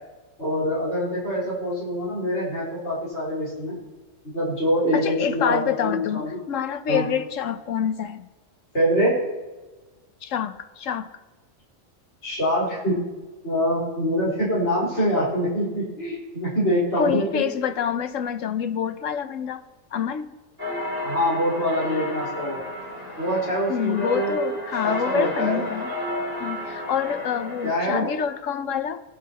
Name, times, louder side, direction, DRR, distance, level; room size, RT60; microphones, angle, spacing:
voice 1, 0.4-3.7 4.2-6.4 6.9-7.0 8.7-9.1 12.2-13.0 13.4-17.4 21.0-22.6 23.2-24.3 24.8-25.7 27.6-28.1, equal, 60° left, -7 dB, 4.8 m, -24 dB
voice 2, 4.9-6.2 6.5-8.3 10.2-11.1 17.0-19.6 19.9-20.3 23.7-25.9 26.4-29.0, left 8 dB, 75° left, 11 dB, 1.1 m, -27 dB
sound 1, 20.6-27.8, left 1 dB, 45° right, 3.4 m, -32 dB
20.0 x 11.5 x 3.0 m, 1.2 s
omnidirectional pair, 1.4 m